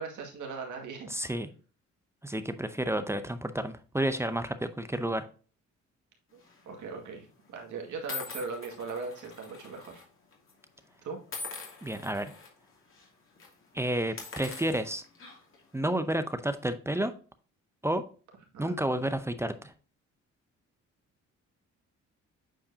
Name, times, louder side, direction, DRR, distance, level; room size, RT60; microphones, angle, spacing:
voice 1, 0.0-1.1 6.3-6.4 6.7-10.0 11.0-11.2 18.5-18.8, right 4 dB, 75° right, 2 dB, 2.1 m, -39 dB
voice 2, 1.1-1.5 2.2-5.3 11.8-12.3 13.7-15.0 15.7-17.1 17.8-18.0 18.6-19.7, right 1 dB, 10° right, 10 dB, 0.6 m, -30 dB
sound 1, 6.4-6.7 7.4-7.5 8.1-10.0 10.3-10.5 11.3-12.5 12.9-13.1 13.4-13.5 14.0-15.6, left 4 dB, 45° left, 2.6 m, -43 dB
8.5 x 4.7 x 2.7 m, 0.38 s
cardioid pair, 90°, 30 cm